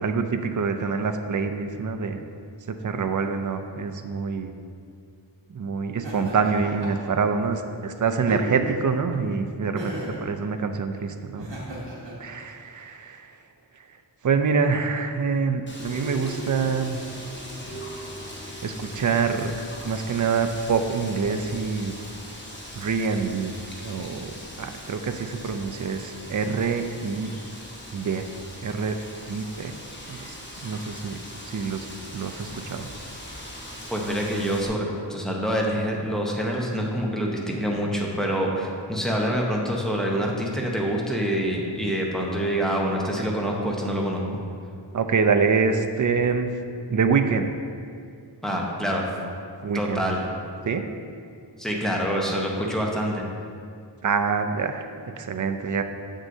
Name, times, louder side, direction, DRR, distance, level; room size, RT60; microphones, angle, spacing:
voice 1, 0.0-2.2 2.8-4.5 5.5-9.9 10.2-11.5 12.2-13.3 14.2-17.0 17.7-17.8 18.6-19.5 19.8-22.0 22.7-23.5 23.8-27.3 27.9-28.3 28.6-29.0 29.3-29.7 30.1-30.4 30.6-31.9 32.1-32.9 43.0-43.1 44.9-46.5 46.9-47.5 49.6-50.1 50.7-50.9 54.0-55.8, right 5 dB, 45° right, 7 dB, 0.4 m, -26 dB
Laughter, 6.0-7.1 8.1-8.9 9.8-10.3 11.4-12.1, right 1 dB, 80° right, 1.2 m, -35 dB
Wind, 15.7-34.7, left 1 dB, 25° left, 1.1 m, -41 dB
sound 1, 15.8-22.0, right 1 dB, 85° left, 1.5 m, -43 dB
voice 2, 33.9-44.2 48.4-49.1 49.7-50.2 51.6-53.2, equal, ahead, -2 dB, 0.9 m, -26 dB
7.3 x 6.3 x 2.7 m, 2.3 s
wide cardioid pair, 45°, 43 cm